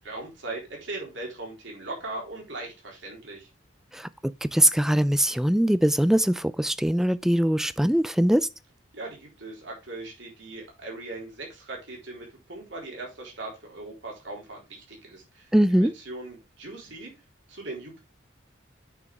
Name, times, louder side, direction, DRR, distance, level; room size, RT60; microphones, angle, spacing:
voice 1, 0.0-3.5 8.9-17.1 17.5-18.0, right 2 dB, 70° right, 4.0 m, -39 dB
voice 2, 4.4-8.5 15.5-15.9, equal, ahead, 0.3 m, -22 dB
9.0 x 6.2 x 3.6 m
head